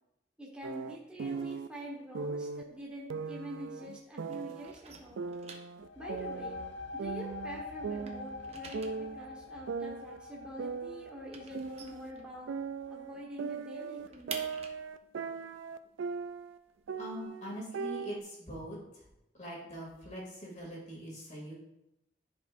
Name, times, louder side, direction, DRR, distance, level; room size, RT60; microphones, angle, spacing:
voice 1, 0.4-5.3 5.9-6.6 6.9-12.5 12.9-14.4, equal, 5° right, -4 dB, 1.3 m, -46 dB
sound 1, 0.6-1.7 2.1-2.6 3.1-4.7 5.2-6.7 7.0-8.5 8.7-9.2 9.7-12.1 12.5-16.6 16.9-18.2, right 5 dB, 85° right, 0.4 m, -39 dB
sound 2, 2.6-4.0 4.3-7.5 7.8-12.8 13.1-13.2 13.5-17.3, right 5 dB, 35° right, 0.8 m, -49 dB
sound 3, 5.8-13.2, left 4 dB, 65° left, 0.6 m, -45 dB
voice 2, 17.0-18.8 19.4-21.5, equal, 40° left, -3 dB, 2.6 m, -42 dB
13.0 x 5.3 x 2.6 m, 0.89 s
head